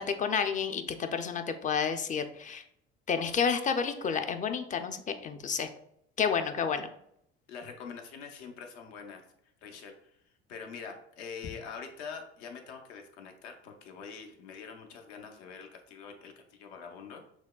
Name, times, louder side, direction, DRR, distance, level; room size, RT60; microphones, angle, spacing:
voice 1, 0.0-2.6 3.1-5.7 6.2-6.9, left 6 dB, 25° left, 8 dB, 0.4 m, -30 dB
voice 2, 7.5-9.2 9.6-10.2 10.5-17.3, left 6 dB, 75° left, 4 dB, 0.8 m, -45 dB
6.2 x 2.2 x 2.3 m, 0.73 s
hypercardioid pair, 75°, 32 cm